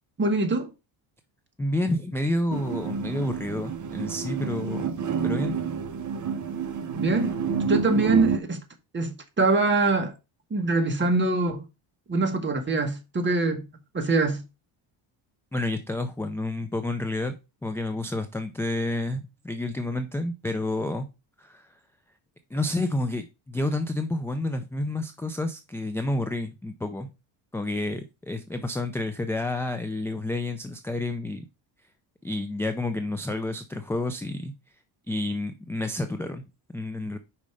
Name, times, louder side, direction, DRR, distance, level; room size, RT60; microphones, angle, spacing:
voice 1, 0.2-0.7 6.9-7.4 7.7-8.6 8.9-10.1 10.5-11.6 12.1-13.6 13.9-14.4, right 3 dB, 25° right, 1.3 m, -24 dB
voice 2, 1.6-4.9 5.2-5.6 15.5-17.4 17.6-21.1 21.4-21.7 22.5-27.1 27.5-31.5 32.2-34.5 35.1-36.4 36.7-37.2, left 2 dB, 5° left, 0.3 m, -29 dB
sound 1, 2.5-8.4, right 6 dB, 40° right, 0.9 m, -29 dB
5.2 x 4.3 x 4.9 m
cardioid pair, 120°, 47 cm